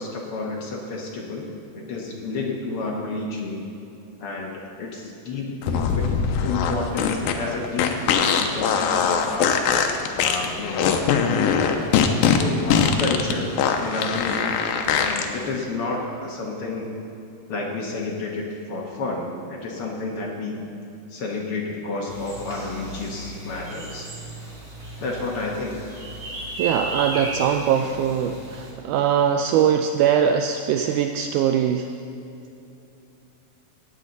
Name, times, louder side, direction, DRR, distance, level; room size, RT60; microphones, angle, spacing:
voice 1, 0.0-1.4 1.7-3.6 4.2-4.5 4.8-6.1 6.4-8.0 8.4-9.6 10.1-11.0 12.4-14.5 14.8-16.9 17.5-20.7 21.1-24.1 25.0-25.8, left 3 dB, 65° left, -2 dB, 1.4 m, -30 dB
sound 1, 5.6-15.3, left 7 dB, 90° left, 2.5 m, -21 dB
sound 2, 22.1-28.7, right 2 dB, 30° right, 1.4 m, -35 dB
voice 2, 26.6-31.9, right 8 dB, 85° right, 5 dB, 1.7 m, -21 dB
16.5 x 9.0 x 4.0 m, 2.8 s
omnidirectional pair, 4.1 m